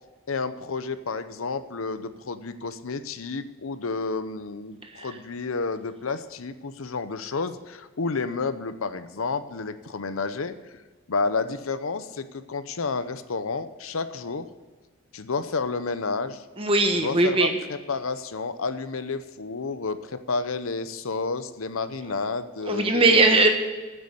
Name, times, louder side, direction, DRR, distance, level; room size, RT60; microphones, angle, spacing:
voice 1, 0.3-10.6 11.1-14.5 15.1-16.4 16.9-23.3, left 4 dB, 85° left, 12 dB, 0.8 m, -30 dB
voice 2, 16.6-17.6 22.6-23.5, right 2 dB, 25° right, 4 dB, 1.4 m, -19 dB
9.7 x 7.9 x 8.6 m, 1.3 s
head